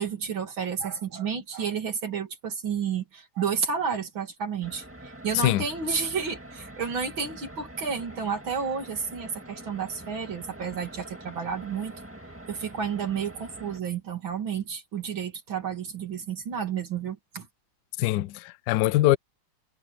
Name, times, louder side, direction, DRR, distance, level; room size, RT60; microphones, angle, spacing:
voice 1, 0.0-11.9 12.5-17.5, right 6 dB, 70° right, 3.3 m, -31 dB
sound 1, 4.6-13.8, right 1 dB, 5° right, 1.8 m, -45 dB
voice 2, 18.0-19.2, left 16 dB, 75° left, 0.9 m, -23 dB
omnidirectional pair, 2.3 m